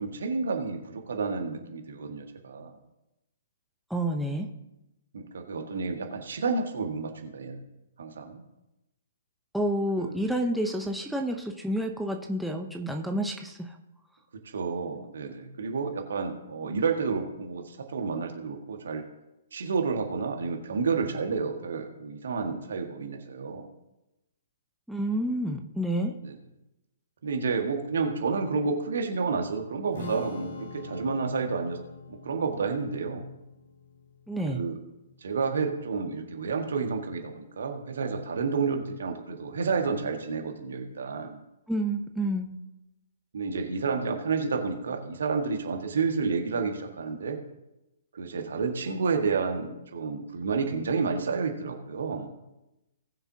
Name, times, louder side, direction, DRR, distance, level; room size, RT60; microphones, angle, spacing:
voice 1, 0.0-2.7 5.1-7.6 8.0-8.4 10.0-10.2 14.5-19.1 19.5-23.6 26.2-26.4 27.2-31.8 32.1-33.2 34.4-34.8 35.2-41.4 43.3-47.4 48.1-52.3, right 5 dB, 60° right, 3 dB, 1.8 m, -30 dB
voice 2, 3.9-4.5 9.5-13.7 24.9-26.1 34.3-34.6 41.7-42.6, right 1 dB, ahead, 2 dB, 0.8 m, -29 dB
Strum, 29.9-36.2, left 3 dB, 55° left, 2.2 m, -44 dB
19.5 x 6.9 x 2.9 m, 0.94 s
figure-of-eight pair, 120°, 0 cm